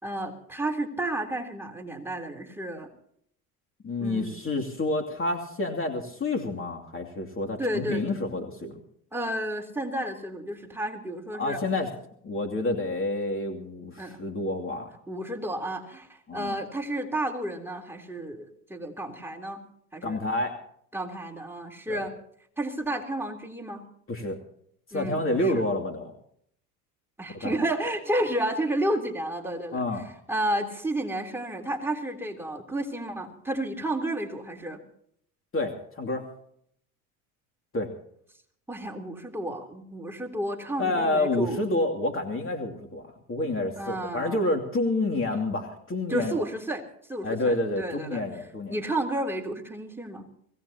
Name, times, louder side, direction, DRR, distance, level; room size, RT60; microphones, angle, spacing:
voice 1, 0.0-2.9 4.0-4.4 7.6-8.2 9.1-11.6 14.0-14.2 15.1-19.6 19.9-20.2 20.9-22.1 22.6-23.8 24.9-25.6 27.2-29.8 30.3-34.8 38.7-41.6 43.8-44.4 46.1-46.8 47.1-48.2 48.7-50.3, right 1 dB, 5° right, 1 dB, 3.3 m, -31 dB
voice 2, 3.8-8.8 11.3-11.9 12.2-14.9 16.3-16.6 20.0-20.5 21.9-22.1 24.1-24.4 24.9-26.1 27.4-27.6 29.7-30.0 35.5-36.3 37.7-37.9 40.8-46.5 47.2-48.8, left 2 dB, 30° left, 3 dB, 2.7 m, -29 dB
25.0 x 17.0 x 2.9 m, 0.67 s
hypercardioid pair, 80°, 43 cm